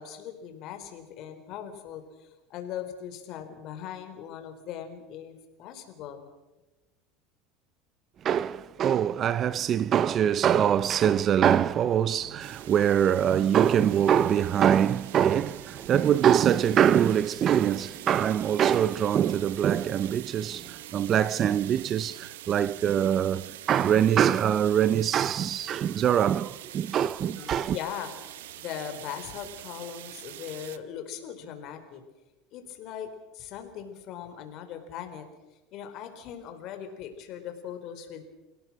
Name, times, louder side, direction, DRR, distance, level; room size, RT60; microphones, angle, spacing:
voice 1, 0.0-6.2 27.3-32.0 32.5-35.2 35.7-38.2, left 9 dB, 55° left, 4.1 m, -40 dB
voice 2, 8.2-27.8, right 9 dB, 35° right, 0.6 m, -24 dB
sound 1, 12.4-30.8, right 14 dB, 90° right, 1.1 m, -45 dB
29.5 x 17.5 x 6.0 m
supercardioid pair, 125°, 0 cm